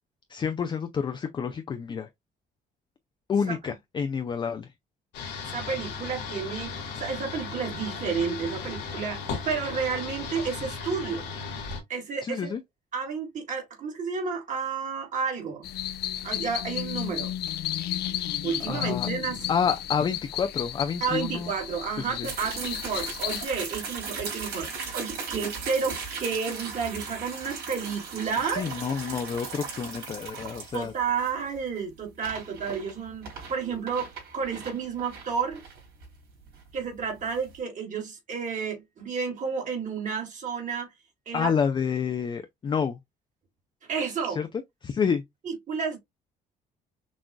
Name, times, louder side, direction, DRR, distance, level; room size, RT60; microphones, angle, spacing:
voice 1, 0.3-2.1 3.3-4.7 12.2-12.6 18.7-19.1 19.5-21.5 22.0-22.3 28.4-30.9 41.3-43.0 44.3-44.5 44.8-45.2, left 6 dB, 30° left, 0.4 m, -29 dB
sound 1, 5.1-11.8, left 5 dB, 85° left, 1.5 m, -36 dB
voice 2, 5.2-11.2 11.9-12.5 12.9-15.7 16.2-17.3 18.4-19.5 21.0-28.6 30.7-34.1 34.3-35.6 36.7-40.9 41.3-41.5 43.9-44.4 45.4-46.0, right 6 dB, 50° right, 2.1 m, -31 dB
sound 2, 15.6-23.5, left 12 dB, 70° left, 0.6 m, -33 dB
sound 3, 22.2-37.6, right 5 dB, 70° right, 3.1 m, -38 dB
6.0 x 2.4 x 2.2 m
cardioid pair, 110°, 17 cm